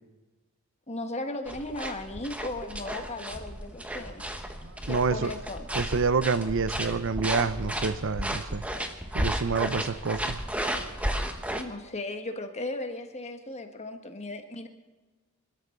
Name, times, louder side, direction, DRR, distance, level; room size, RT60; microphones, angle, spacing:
voice 1, 0.9-4.2 4.8-5.7 11.5-14.7, left 2 dB, 30° left, 6 dB, 1.5 m, -36 dB
sound 1, 1.5-11.6, right 1 dB, 5° right, 1.2 m, -33 dB
voice 2, 4.6-5.3 5.7-8.6 9.1-10.4, right 4 dB, 55° right, 14 dB, 0.6 m, -28 dB
27.0 x 13.0 x 3.9 m, 1.2 s
head